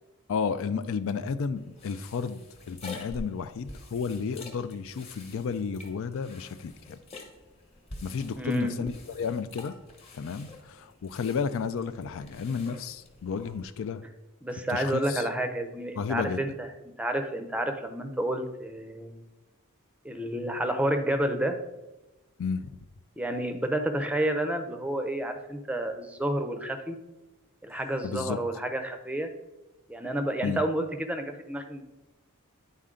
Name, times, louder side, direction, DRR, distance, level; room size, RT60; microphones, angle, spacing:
voice 1, 0.3-2.4 2.7-7.0 8.0-9.8 10.1-14.0 14.7-15.3 16.0-16.4 22.4-22.7 28.0-28.4 30.4-30.6, left 5 dB, 65° left, 12 dB, 0.4 m, -32 dB
sound 1, 1.6-13.6, left 2 dB, 30° left, 1.1 m, -47 dB
voice 2, 8.4-8.9 14.4-16.7 17.0-19.2 20.0-21.6 23.2-27.0 27.6-29.3 29.9-31.8, right 1 dB, 5° right, 7 dB, 0.6 m, -30 dB
10.0 x 4.2 x 3.7 m, 1.0 s
head